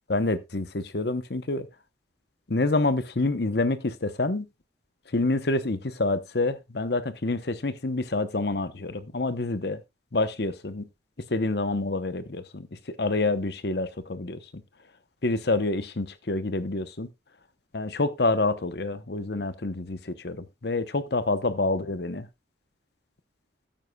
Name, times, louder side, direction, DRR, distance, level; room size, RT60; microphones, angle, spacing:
voice 1, 0.1-1.7 2.5-4.5 5.1-9.8 10.1-10.8 11.3-14.6 15.2-17.1 17.7-22.3, left 2 dB, 60° left, 0.9 m, -27 dB
13.0 x 9.7 x 2.3 m
head